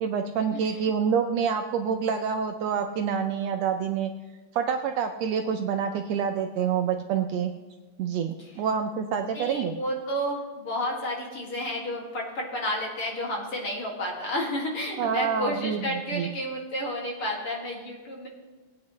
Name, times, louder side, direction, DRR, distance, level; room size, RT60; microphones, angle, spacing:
voice 1, 0.0-4.1 4.5-7.6 8.0-9.7 15.0-15.8 16.1-16.3, right 7 dB, 75° right, 5 dB, 1.6 m, -27 dB
voice 2, 9.3-18.3, equal, 50° left, -2 dB, 2.9 m, -31 dB
20.0 x 8.9 x 3.2 m, 1.3 s
omnidirectional pair, 3.4 m